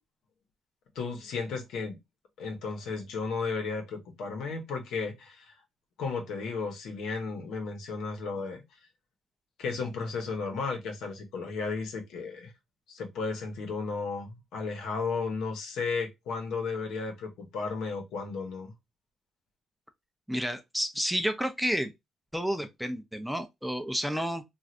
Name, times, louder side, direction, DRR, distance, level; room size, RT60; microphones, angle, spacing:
voice 1, 0.9-2.0 2.4-5.6 6.0-8.6 9.6-12.5 12.9-18.7, left 4 dB, 80° left, 1.0 m, -34 dB
voice 2, 20.3-21.9 22.3-24.4, equal, 5° right, 0.5 m, -30 dB
3.1 x 2.4 x 2.4 m
cardioid pair, 90°, 0 cm